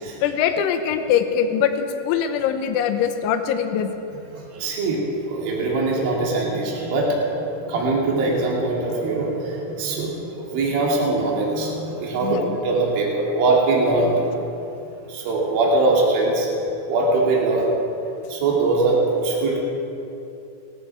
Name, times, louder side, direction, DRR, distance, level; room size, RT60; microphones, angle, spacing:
voice 1, 0.2-3.9 12.2-12.6, left 8 dB, 80° left, 7 dB, 3.1 m, -22 dB
voice 2, 4.3-14.4 15.1-16.5 16.9-17.7 18.3-19.6, right 2 dB, 50° right, -3 dB, 3.9 m, -22 dB
19.0 x 14.5 x 4.7 m, 2.8 s
omnidirectional pair, 5.9 m